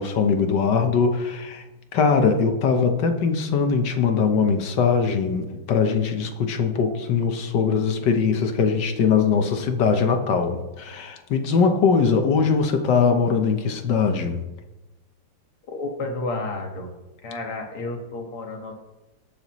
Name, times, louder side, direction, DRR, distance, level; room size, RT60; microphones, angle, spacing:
voice 1, 0.0-1.6 1.9-14.4, left 5 dB, 60° left, 6 dB, 1.5 m, -21 dB
voice 2, 15.7-16.9 17.2-18.8, left 2 dB, 80° left, 2 dB, 2.6 m, -31 dB
20.0 x 6.9 x 3.1 m, 1.1 s
omnidirectional pair, 2.4 m